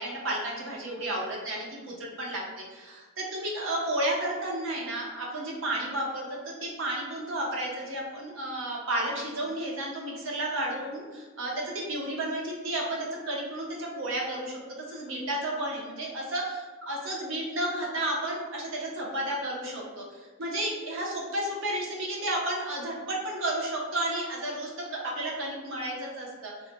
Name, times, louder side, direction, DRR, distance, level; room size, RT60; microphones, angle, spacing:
voice 1, 0.0-2.4 2.7-11.6 11.9-14.6 14.9-26.5, right 1 dB, 60° right, -2 dB, 0.6 m, -32 dB
3.1 x 2.1 x 2.9 m, 1.3 s
head